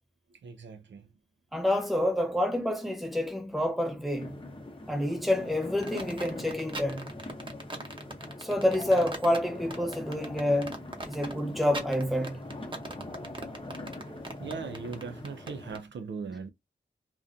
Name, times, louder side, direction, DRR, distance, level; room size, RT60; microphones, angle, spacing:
voice 1, 0.4-1.0 14.4-16.5, right 5 dB, 70° right, 0.4 m, -39 dB
voice 2, 1.5-4.4 4.9-7.1 8.4-12.4, left 1 dB, ahead, 0.9 m, -28 dB
sound 1, 4.2-15.8, left 2 dB, 25° left, 0.7 m, -42 dB
sound 2, 5.8-15.8, right 2 dB, 25° right, 0.7 m, -40 dB
2.3 x 2.1 x 2.5 m
cardioid pair, 45°, 20 cm